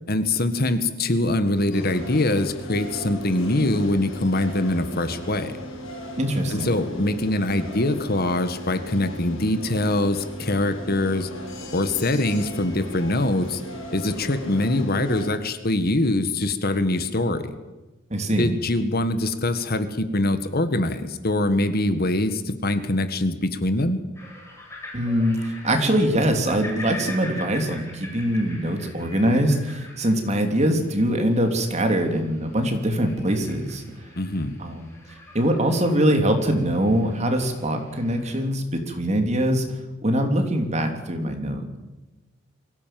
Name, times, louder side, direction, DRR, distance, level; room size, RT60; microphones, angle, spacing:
voice 1, 0.1-5.6 6.5-11.3 11.7-13.6 13.9-17.5 18.4-24.0 34.2-34.6, left 1 dB, 50° left, 10 dB, 1.7 m, -23 dB
sound 1, 1.7-15.3, equal, 75° left, 6.2 m, -37 dB
voice 2, 6.2-6.7 18.1-18.5 24.9-33.8 34.6-34.9 35.3-39.6 40.0-41.8, equal, 35° right, 4 dB, 3.3 m, -23 dB
sound 2, 24.1-38.4, left 2 dB, 15° left, 7.0 m, -43 dB
23.5 x 16.5 x 7.7 m, 1.1 s
head